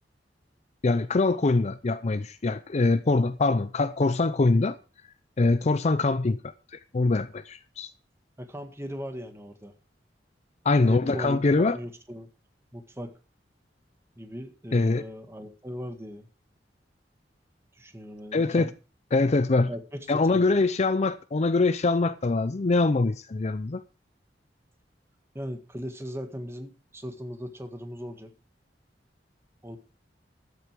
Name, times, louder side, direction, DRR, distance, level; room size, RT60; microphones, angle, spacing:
voice 1, 0.8-4.8 5.4-6.4 6.9-7.9 10.6-11.8 14.7-15.0 18.3-18.7 19.1-19.7 20.1-23.8, left 3 dB, 40° left, 0.5 m, -23 dB
voice 2, 8.4-9.7 10.8-12.3 12.7-13.1 14.1-16.3 17.7-18.7 19.7-20.4 25.3-28.3 29.6-29.8, equal, 15° right, 1.7 m, -38 dB
13.5 x 7.8 x 4.9 m
head